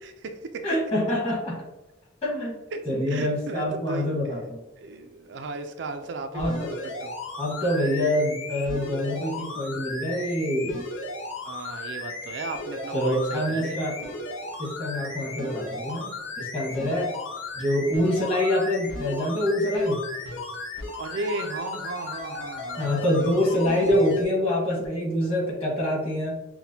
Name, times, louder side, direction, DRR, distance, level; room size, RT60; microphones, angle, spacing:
voice 1, 0.0-0.7 2.7-4.1 4.8-7.2 11.5-14.1 21.0-23.3, right 3 dB, 65° right, 7 dB, 0.4 m, -36 dB
voice 2, 0.6-1.6 2.2-2.6 2.8-4.6 6.3-6.7 7.4-10.8 12.9-14.0 14.6-17.1 17.5-20.0 22.8-26.4, left 1 dB, 30° left, -4 dB, 1.3 m, -25 dB
sound 1, 6.4-24.2 24.8-24.9, left 2 dB, 85° left, 0.9 m, -36 dB
5.9 x 2.2 x 2.7 m, 0.98 s
head